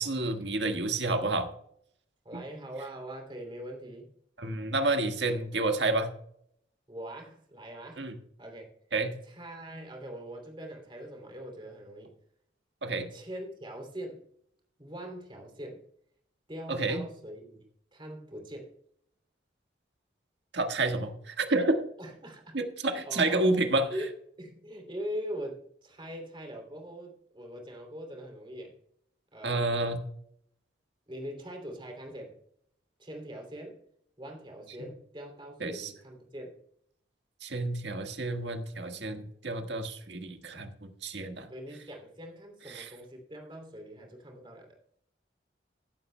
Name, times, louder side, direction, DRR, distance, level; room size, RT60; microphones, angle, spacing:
voice 1, 0.0-1.5 2.3-2.4 4.4-6.1 8.0-8.1 8.9-9.1 12.8-13.1 16.7-17.0 20.5-21.8 22.5-23.9 29.4-30.0 35.6-35.9 37.4-41.5 42.7-42.9, right 2 dB, 70° right, 6 dB, 1.5 m, -29 dB
voice 2, 2.2-4.1 6.9-8.1 8.4-8.7 9.2-12.1 13.1-14.2 14.8-15.8 16.5-17.6 17.9-18.7 22.0-23.5 23.9-24.1 24.4-28.7 29.3-29.9 31.1-32.4 33.0-33.8 34.2-36.6 41.5-44.8, equal, 25° right, 2 dB, 2.8 m, -42 dB
15.5 x 11.5 x 2.2 m, 0.69 s
head